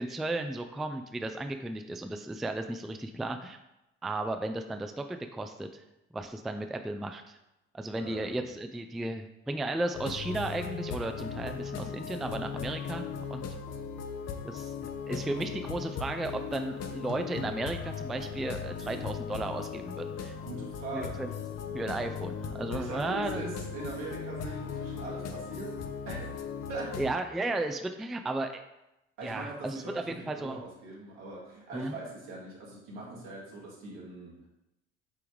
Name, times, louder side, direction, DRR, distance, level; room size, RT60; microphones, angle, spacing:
voice 1, 0.0-3.6 4.0-5.8 6.1-7.4 7.7-13.5 14.4-20.4 20.9-21.3 21.7-23.4 27.0-28.6 29.2-30.6 31.7-32.0, right 2 dB, ahead, 7 dB, 0.3 m, -34 dB
voice 2, 8.0-8.4 20.5-21.5 22.7-26.3 26.7-27.0 29.2-34.4, right 3 dB, 75° right, -5 dB, 2.0 m, -41 dB
sound 1, 9.9-27.1, left 6 dB, 45° left, 0.7 m, -38 dB
8.6 x 3.5 x 3.1 m, 0.90 s
figure-of-eight pair, 55°, 36 cm